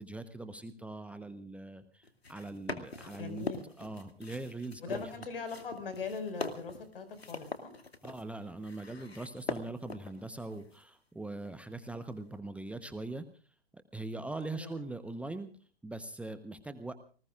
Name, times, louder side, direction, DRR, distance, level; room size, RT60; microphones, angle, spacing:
voice 1, 0.0-3.5 3.8-5.0 8.0-13.2 13.7-15.5 15.8-16.9, right 2 dB, 5° right, 10 dB, 1.0 m, -41 dB
sound 1, 2.0-10.8 11.5-12.0, left 3 dB, 80° left, 2.2 m, -42 dB
voice 2, 3.2-3.7 4.8-7.7 14.5-14.9, left 5 dB, 65° left, 8 dB, 5.6 m, -40 dB
29.0 x 19.5 x 2.5 m, 0.39 s
figure-of-eight pair, 105°, 30 cm